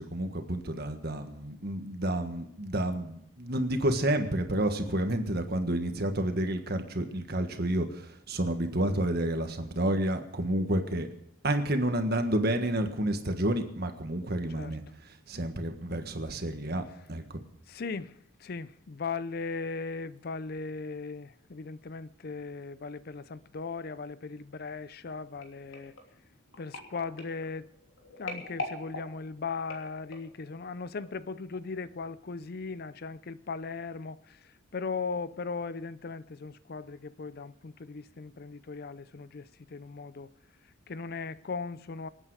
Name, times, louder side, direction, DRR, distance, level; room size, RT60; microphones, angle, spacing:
voice 1, 0.0-11.1 11.4-14.8 15.3-16.8 17.1-17.4, right 1 dB, 50° right, 1.5 m, -30 dB
voice 2, 17.7-25.9 26.6-27.7 28.2-40.3 40.9-42.1, left 4 dB, 45° left, 0.5 m, -38 dB
sound 1, 25.4-30.4 31.0-31.3 31.5-31.6, left 3 dB, 75° left, 3.1 m, -43 dB
26.0 x 8.9 x 4.9 m
head